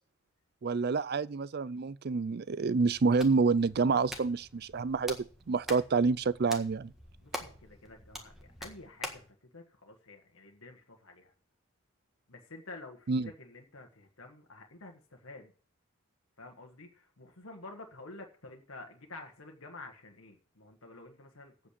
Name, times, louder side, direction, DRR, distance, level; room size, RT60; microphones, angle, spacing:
voice 1, 0.6-5.2 5.5-6.9 13.1-13.3, right 4 dB, 45° right, 0.4 m, -28 dB
Hands, 2.8-9.3, equal, ahead, 1.6 m, -46 dB
voice 2, 7.2-11.3 12.3-15.5 16.4-21.8, left 2 dB, 75° left, 1.5 m, -50 dB
8.6 x 7.4 x 8.2 m
head